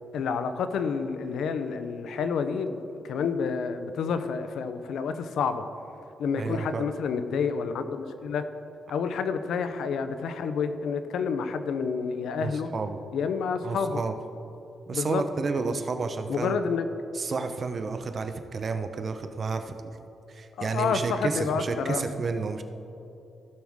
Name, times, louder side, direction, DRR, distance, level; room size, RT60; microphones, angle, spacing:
voice 1, 0.1-5.6 6.2-8.4 8.9-12.7 13.1-14.0 14.9-15.2 16.3-16.9 20.6-22.0, left 5 dB, 85° left, 9 dB, 0.6 m, -29 dB
voice 2, 6.3-6.9 12.4-13.0 13.6-14.2 14.9-16.6 17.1-19.7 20.3-22.6, right 4 dB, 45° right, 8 dB, 0.7 m, -31 dB
15.5 x 6.3 x 3.6 m, 2.8 s
cardioid pair, 95°, 0 cm